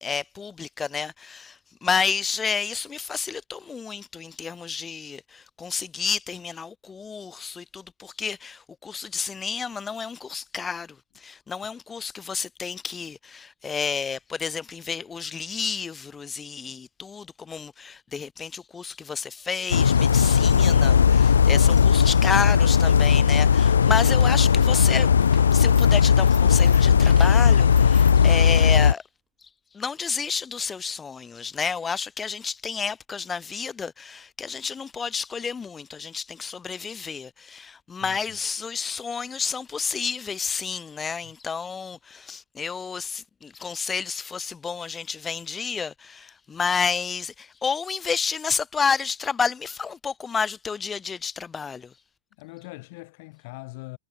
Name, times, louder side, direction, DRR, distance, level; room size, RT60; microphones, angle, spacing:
voice 1, 0.0-25.1 25.4-29.0 29.7-51.9, left 5 dB, 20° left, 1.5 m, -30 dB
sound 1, 19.7-28.9, left 7 dB, 80° left, 0.3 m, -17 dB
sound 2, 24.2-29.0, right 8 dB, 25° right, 4.9 m, -49 dB
voice 2, 38.0-38.4 41.2-41.3 52.4-54.0, left 25 dB, 50° left, 4.4 m, -42 dB
figure-of-eight pair, 95°, 0 cm